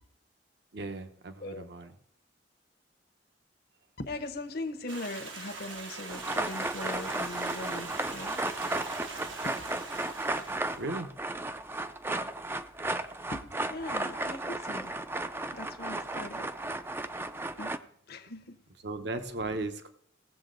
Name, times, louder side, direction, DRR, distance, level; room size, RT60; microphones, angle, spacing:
voice 1, 0.7-1.9 10.8-11.1 18.8-19.9, right 2 dB, 60° right, 0.9 m, -36 dB
voice 2, 4.0-8.4 8.7-8.8 9.1-9.6 13.3-15.0 15.5-16.5 17.6-17.8 18.1-18.6, left 2 dB, 55° left, 0.8 m, -40 dB
Stream, 4.9-10.9, right 4 dB, 80° right, 1.4 m, -43 dB
sound 1, 6.1-17.8, right 2 dB, 10° right, 0.4 m, -34 dB
17.5 x 7.4 x 3.8 m
head